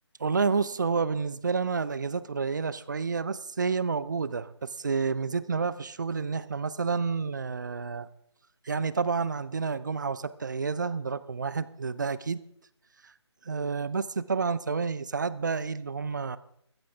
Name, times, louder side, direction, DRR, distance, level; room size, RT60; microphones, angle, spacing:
voice 1, 0.2-8.1 8.7-12.4 13.4-16.4, right 5 dB, 40° right, 17 dB, 0.6 m, -29 dB
15.0 x 14.5 x 3.5 m, 0.73 s
figure-of-eight pair, 155°, 15 cm